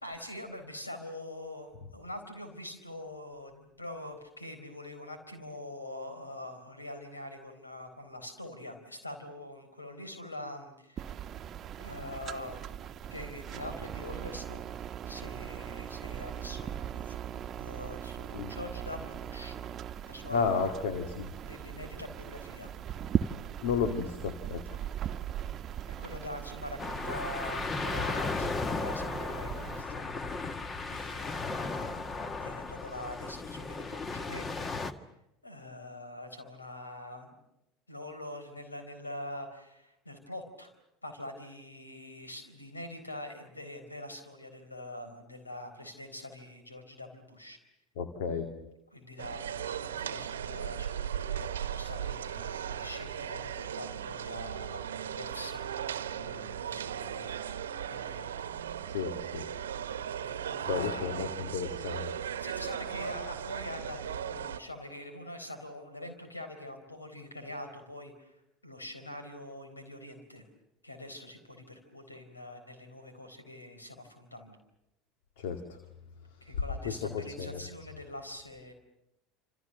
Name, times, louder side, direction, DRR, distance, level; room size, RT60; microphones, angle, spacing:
voice 1, 0.0-11.1 11.8-12.7 13.1-19.6 20.1-20.7 21.4-22.7 25.9-30.0 30.8-32.0 32.4-34.7 35.4-37.4 37.9-40.7 41.0-47.6 48.9-55.7 56.1-57.4 57.9-58.3 60.1-61.0 62.4-68.4 68.6-70.5 70.8-74.6 76.4-78.7, left 1 dB, 85° left, 7 dB, 4.2 m, -44 dB
sound 1, 11.0-29.8, right 9 dB, 35° right, 1.1 m, -39 dB
voice 2, 20.3-21.3 23.6-24.8 48.0-48.5 58.9-59.5 60.7-62.1 75.4-75.8 76.8-77.6, left 6 dB, 65° left, 6 dB, 2.2 m, -33 dB
sound 2, 26.8-34.9, left 3 dB, 25° left, 1.8 m, -35 dB
sound 3, 49.2-64.6, right 9 dB, 75° right, 1.1 m, -37 dB
28.5 x 27.5 x 6.7 m, 0.87 s
figure-of-eight pair, 70°, 0 cm